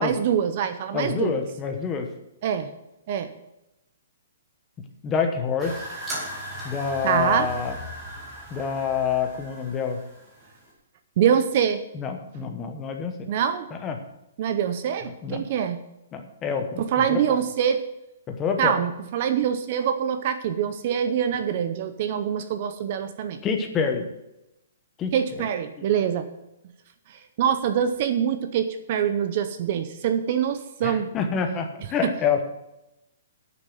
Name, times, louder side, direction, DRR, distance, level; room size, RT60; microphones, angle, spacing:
voice 1, 0.0-1.4 2.4-2.7 3.1-3.3 7.0-7.5 11.2-11.8 13.3-13.7 14.4-15.8 16.8-17.8 18.6-23.4 25.1-26.3 27.4-31.1 32.0-32.1, right 8 dB, 30° right, 10 dB, 0.6 m, -24 dB
voice 2, 0.9-2.1 4.8-5.8 6.6-7.8 8.5-10.0 11.9-13.3 13.7-14.0 15.0-15.5 16.1-17.2 18.3-18.7 23.4-24.1 25.0-25.5 25.8-25.9 30.8-32.4, left 6 dB, 15° left, 5 dB, 0.9 m, -27 dB
sound 1, 5.6-10.7, equal, 10° right, 2.2 m, -37 dB
9.1 x 6.8 x 7.6 m, 0.89 s
hypercardioid pair, 180°, 0 cm